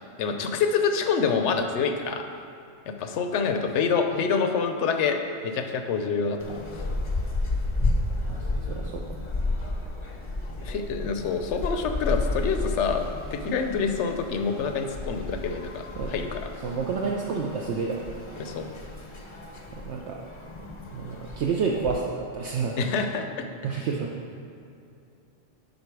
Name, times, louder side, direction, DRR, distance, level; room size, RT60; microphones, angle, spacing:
voice 1, 0.2-2.2 2.9-6.6 10.6-13.0 13.3-16.5 18.4-18.7 22.8-23.3, left 5 dB, 75° left, 6 dB, 1.0 m, -26 dB
sound 1, 6.4-22.0, left 2 dB, 30° left, 0.6 m, -32 dB
voice 2, 8.3-9.0 16.0-16.2 16.6-18.1 19.7-20.2 20.9-22.8 23.6-24.2, right 5 dB, 70° right, -1 dB, 0.9 m, -29 dB
11.0 x 3.9 x 4.7 m, 2.6 s
omnidirectional pair, 1.2 m